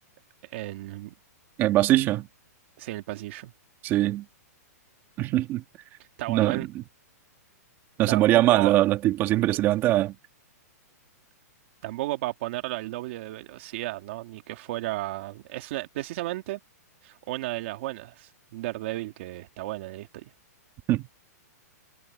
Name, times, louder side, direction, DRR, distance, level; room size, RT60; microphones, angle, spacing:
voice 1, 0.4-1.1 2.8-3.5 6.2-6.7 8.1-8.7 11.8-16.6 17.0-20.3, right 17 dB, 45° right, 2.0 m, -33 dB
voice 2, 1.6-2.3 3.8-4.2 5.2-5.6 6.3-6.8 8.0-10.1 20.9-21.1, right 15 dB, 25° right, 2.5 m, -22 dB
hypercardioid pair, 165°, 9 cm